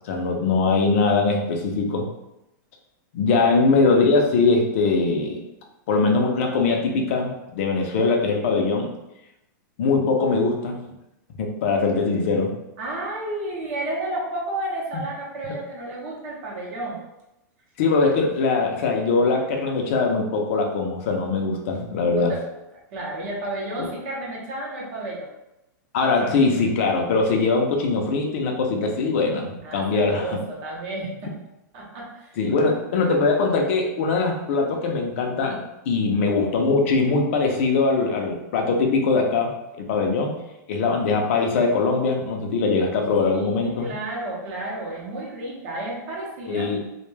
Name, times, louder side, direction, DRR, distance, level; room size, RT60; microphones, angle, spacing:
voice 1, 0.0-2.1 3.1-5.4 5.9-8.9 9.8-10.8 11.4-12.5 17.8-22.3 23.8-23.9 25.9-30.4 32.4-40.3 40.7-43.9 46.5-46.8, left 3 dB, 40° left, 2 dB, 0.5 m, -21 dB
voice 2, 12.8-17.0 22.2-22.5 22.9-25.3 29.6-31.3 31.7-32.4 43.3-46.7, right 1 dB, 35° right, -4 dB, 0.7 m, -32 dB
2.1 x 2.1 x 3.1 m, 0.91 s
supercardioid pair, 165°, 10 cm